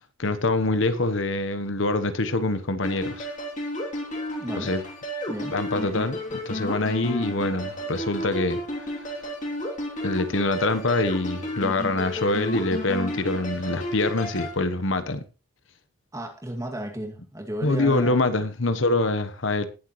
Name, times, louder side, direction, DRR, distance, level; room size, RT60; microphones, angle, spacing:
voice 1, 0.2-3.3 4.6-4.8 5.5-8.6 10.0-15.2 17.6-19.7, left 2 dB, 70° left, 1.1 m, -25 dB
sound 1, 2.8-14.5, equal, 35° left, 3.1 m, -32 dB
voice 2, 4.4-4.8 5.3-5.6 16.1-18.1, right 1 dB, 15° right, 2.3 m, -34 dB
19.5 x 8.0 x 3.1 m
head